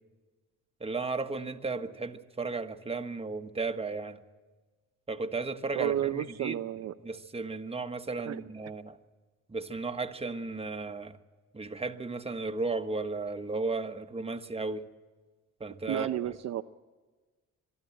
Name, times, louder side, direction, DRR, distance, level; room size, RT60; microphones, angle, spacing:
voice 1, 0.8-4.2 5.1-6.6 7.0-9.0 9.5-11.1 11.5-14.8 15.6-16.1, right 3 dB, 20° right, 7 dB, 1.3 m, -34 dB
voice 2, 5.7-6.9 8.3-8.4 15.9-16.6, right 11 dB, 60° right, 8 dB, 0.6 m, -31 dB
23.5 x 12.5 x 9.9 m, 1.3 s
cardioid pair, 90°, 30 cm